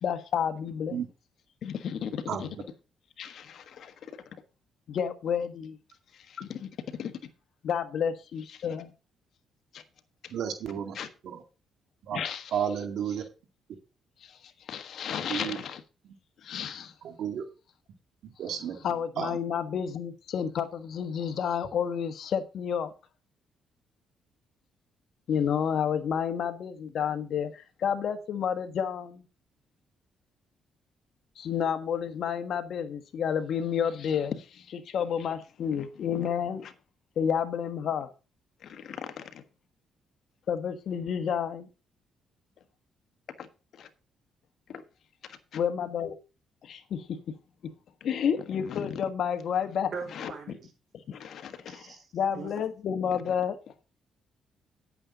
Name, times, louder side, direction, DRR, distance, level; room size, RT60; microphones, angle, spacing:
voice 1, 0.0-1.0 1.6-2.5 3.2-3.9 4.9-5.8 6.3-6.7 7.0-7.1 7.6-8.9 9.7-9.8 10.9-11.1 12.1-12.8 14.2-14.4 14.7-15.8 16.4-16.9 18.5-22.9 25.3-29.2 31.4-36.7 37.2-38.1 38.6-39.3 40.5-41.7 43.4-43.5 43.8-43.9 44.7-44.8 45.5-46.2 46.6-47.2 48.0-50.3 51.1-53.6, left 8 dB, 65° left, 1.4 m, -31 dB
voice 2, 10.3-11.0 11.2-11.4 12.1-12.2 12.5-13.2 15.3-15.6 17.0-17.4 18.4-18.8 19.2-19.4, right 8 dB, 75° right, 2.2 m, -32 dB
voice 3, 49.9-50.7 51.7-52.6, right 5 dB, 55° right, 4.9 m, -41 dB
10.0 x 8.8 x 3.9 m
cardioid pair, 90°, 0 cm